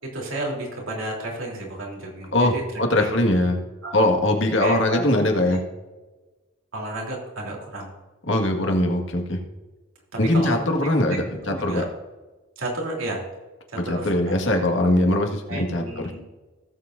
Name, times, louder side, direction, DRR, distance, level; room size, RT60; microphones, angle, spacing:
voice 1, 0.0-3.2 3.8-4.0 4.6-5.0 6.7-7.9 10.1-10.6 11.1-11.2 11.4-11.9 12.6-13.2 13.7-14.3 15.5-16.3, right 1 dB, 90° right, -1 dB, 3.3 m, -32 dB
voice 2, 2.3-3.6 3.9-5.6 8.3-9.4 10.2-11.8 13.9-16.0, left 1 dB, 70° left, 2 dB, 1.8 m, -21 dB
17.5 x 7.7 x 2.6 m, 1.2 s
head